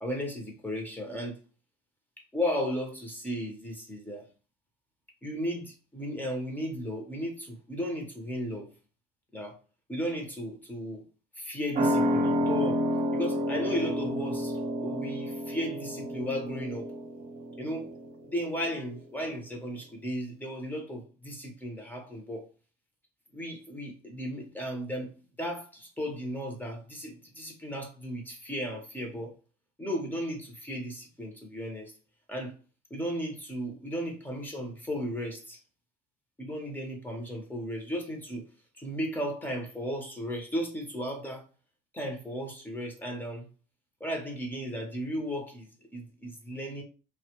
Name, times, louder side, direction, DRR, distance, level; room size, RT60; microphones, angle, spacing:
voice 1, 0.0-1.4 2.3-4.3 5.2-8.7 9.3-9.6 9.9-11.0 11.4-12.8 13.1-16.9 17.6-17.9 18.3-22.5 23.3-25.1 25.4-29.3 29.8-31.9 32.3-32.5 32.9-35.6 36.4-38.5 38.8-41.4 41.9-43.5 44.0-46.8, equal, 10° left, 0.7 m, -35 dB
sound 1, 11.7-18.8 19.1-19.2, equal, 55° right, 0.7 m, -30 dB
2.1 x 2.0 x 2.9 m
cardioid pair, 110°, 17 cm